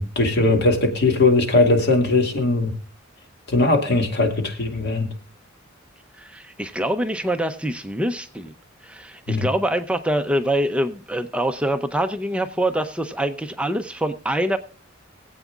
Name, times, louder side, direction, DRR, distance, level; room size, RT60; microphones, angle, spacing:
voice 1, 0.0-2.7 3.5-5.1 9.3-9.5, left 2 dB, 60° left, 2.1 m, -19 dB
voice 2, 6.2-8.5 8.8-14.6, right 1 dB, 5° right, 0.5 m, -25 dB
23.5 x 8.2 x 2.4 m
head